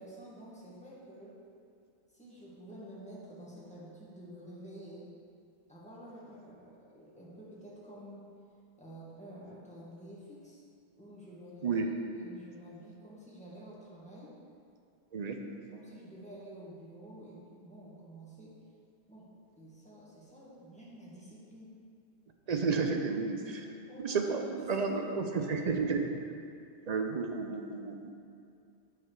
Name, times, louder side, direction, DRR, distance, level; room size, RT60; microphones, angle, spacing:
voice 1, 0.0-1.4 2.1-5.1 5.7-8.3 8.8-10.6 11.0-11.9 12.1-14.4 15.7-18.6 19.1-21.8 23.5-25.9, equal, 5° left, -7 dB, 1.6 m, -49 dB
voice 2, 22.5-23.6 24.0-26.1 26.9-28.2, right 4 dB, 50° right, 4 dB, 0.5 m, -32 dB
8.7 x 4.8 x 4.6 m, 2.5 s
omnidirectional pair, 1.2 m